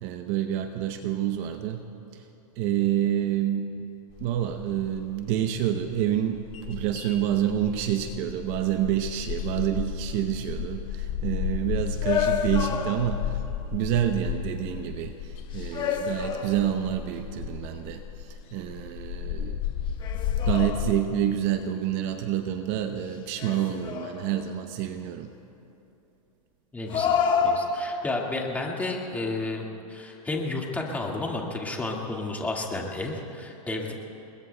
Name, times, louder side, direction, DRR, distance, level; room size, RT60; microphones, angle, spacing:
voice 1, 0.0-2.3 2.6-3.8 4.2-13.4 13.7-19.6 20.5-25.3, right 11 dB, 40° right, 7 dB, 0.8 m, -28 dB
sound 1, 4.1-20.9, left 9 dB, 40° left, 4.0 m, -33 dB
sound 2, 12.0-13.4 15.5-17.0 20.0-21.3 23.4-24.5 26.9-28.2, left 6 dB, 25° left, 1.2 m, -29 dB
voice 2, 26.7-27.2 27.4-33.9, left 2 dB, 10° left, -1 dB, 1.9 m, -31 dB
29.0 x 21.5 x 2.3 m, 2.8 s
hypercardioid pair, 140°, 19 cm